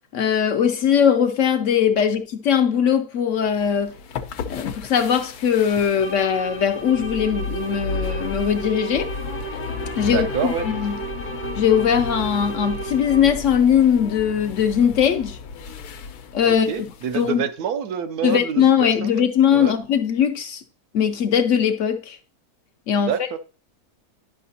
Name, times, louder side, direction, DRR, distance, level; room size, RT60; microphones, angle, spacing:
voice 1, 0.1-3.9 4.4-9.1 9.5-9.6 10.0-11.0 11.6-15.4 16.3-16.9 17.1-17.4 18.2-20.6 20.9-22.2 22.9-23.1, left 8 dB, 65° left, 0.8 m, -20 dB
sound 1, 3.4-17.3, left 4 dB, 85° left, 1.2 m, -34 dB
sound 2, 5.9-13.5, right 5 dB, 15° left, 0.6 m, -34 dB
voice 2, 10.0-10.7 16.4-19.1 19.5-19.7 23.0-23.4, right 7 dB, 80° right, 1.2 m, -27 dB
10.0 x 5.7 x 2.7 m
omnidirectional pair, 1.6 m